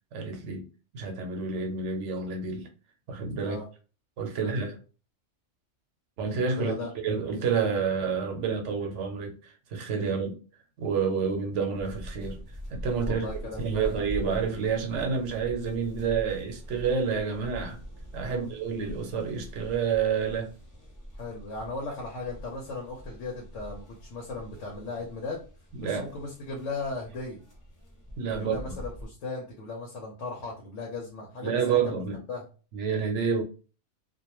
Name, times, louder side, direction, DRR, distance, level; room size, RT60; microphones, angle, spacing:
voice 1, 0.1-2.7 3.1-3.6 4.2-4.8 6.2-10.4 10.8-13.3 13.6-17.8 18.1-20.5 25.8-26.1 28.2-28.6 31.4-32.2 32.7-33.4, right 6 dB, 85° right, 1.0 m, -29 dB
voice 2, 6.6-6.9 10.0-10.2 13.0-14.0 18.2-18.5 21.1-25.4 25.8-27.4 28.3-31.8 32.3-32.4, left 3 dB, 80° left, 1.0 m, -37 dB
sound 1, 11.7-29.1, equal, 20° left, 0.5 m, -43 dB
2.5 x 2.2 x 2.9 m
omnidirectional pair, 1.2 m